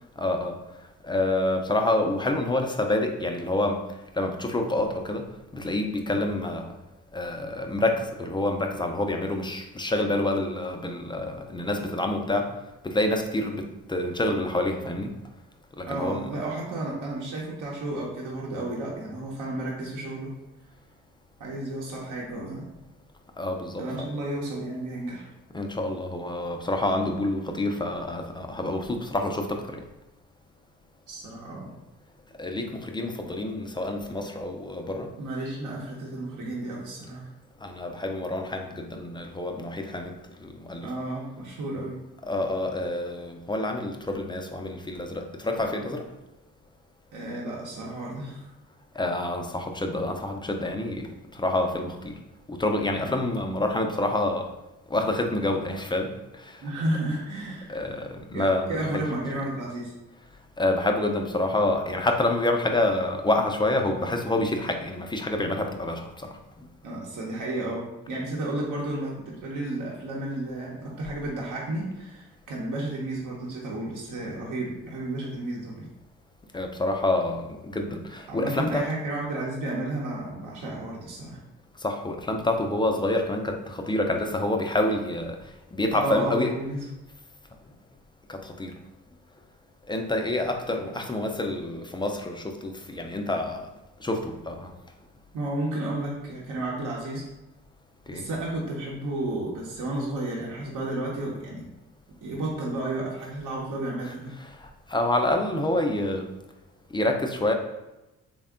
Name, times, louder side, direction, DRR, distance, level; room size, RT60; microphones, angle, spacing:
voice 1, 0.2-0.6 1.0-3.9 4.1-6.7 7.1-12.5 12.8-15.2 15.8-16.2 23.4-23.8 25.5-29.8 32.4-35.1 37.6-40.9 42.2-46.1 48.9-52.2 52.5-54.5 54.9-56.7 57.7-58.7 58.9-59.0 60.6-66.7 76.5-78.8 81.8-86.5 88.3-88.7 89.9-93.7 94.0-94.7 98.1-98.3 104.5-106.3 106.9-107.5, left 1 dB, 15° left, 4 dB, 0.4 m, -27 dB
voice 2, 15.8-20.3 21.4-22.7 23.8-25.3 31.1-31.7 35.2-37.3 40.8-42.0 47.1-48.5 56.6-57.8 58.3-59.9 66.8-75.9 78.3-81.4 85.9-86.9 95.3-97.3 98.1-101.7 102.2-104.4, right 1 dB, 60° right, -4 dB, 0.9 m, -32 dB
3.4 x 2.2 x 3.6 m, 0.99 s
supercardioid pair, 70°, 34 cm